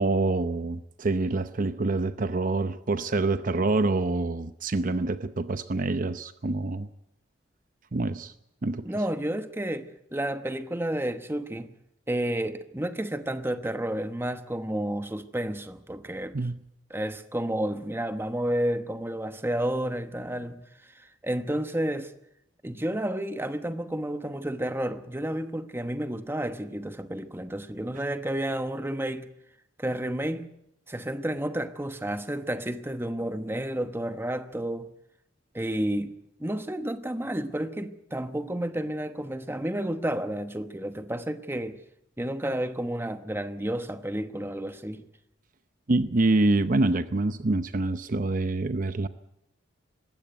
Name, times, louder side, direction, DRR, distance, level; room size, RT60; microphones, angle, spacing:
voice 1, 0.0-6.9 7.9-8.3 8.6-8.9 16.3-16.6 45.9-49.1, right 2 dB, 45° right, 0.7 m, -26 dB
voice 2, 8.8-11.7 12.1-16.4 16.9-22.1 22.6-29.3 29.8-30.5 30.9-34.9 35.5-41.8 42.2-45.1, right 1 dB, 10° right, 1.0 m, -31 dB
20.0 x 16.5 x 9.1 m
head